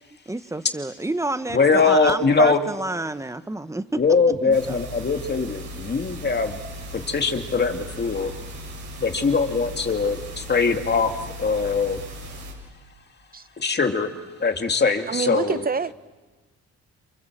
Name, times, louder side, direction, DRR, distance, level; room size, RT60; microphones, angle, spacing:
voice 1, 0.3-4.0 4.4-4.8, right 2 dB, 10° right, 1.3 m, -29 dB
voice 2, 1.5-2.6 4.0-6.6 6.9-8.3 9.0-11.1 11.4-12.0 13.6-14.1 14.4-15.6, left 4 dB, 35° left, 2.4 m, -21 dB
sound 1, 4.5-12.5, equal, 70° right, 7.1 m, -38 dB
voice 3, 15.1-15.9, right 5 dB, 30° right, 0.8 m, -26 dB
28.0 x 28.0 x 7.5 m
cardioid pair, 90°, 30 cm